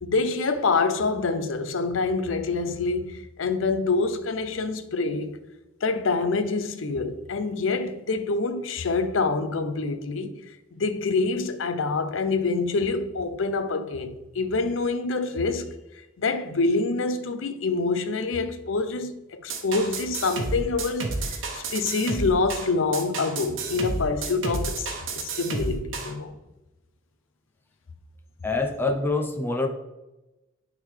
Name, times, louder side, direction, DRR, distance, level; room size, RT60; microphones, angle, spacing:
voice 1, 0.0-5.4 5.8-10.4 10.7-15.7 16.2-26.3, left 3 dB, 80° left, 0.6 m, -26 dB
sound 1, 19.5-26.1, right 3 dB, 80° right, 1.0 m, -31 dB
voice 2, 28.4-29.7, left 3 dB, 10° left, 0.7 m, -25 dB
9.3 x 3.7 x 3.3 m
head